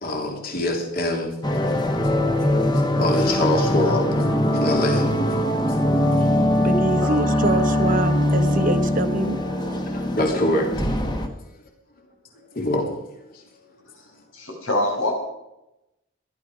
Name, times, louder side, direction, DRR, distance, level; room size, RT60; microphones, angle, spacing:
voice 1, 0.0-1.3 2.7-4.1 4.5-5.1 5.7-6.5 9.9-10.9 12.5-12.9, left 1 dB, 45° left, 1 dB, 3.2 m, -25 dB
sound 1, 1.4-11.3, left 1 dB, 20° left, 1.4 m, -21 dB
voice 2, 6.6-9.4, right 2 dB, 40° right, 10 dB, 1.0 m, -25 dB
voice 3, 14.3-15.1, left 1 dB, 85° left, 1 dB, 6.1 m, -24 dB
19.0 x 12.0 x 5.0 m, 0.91 s
head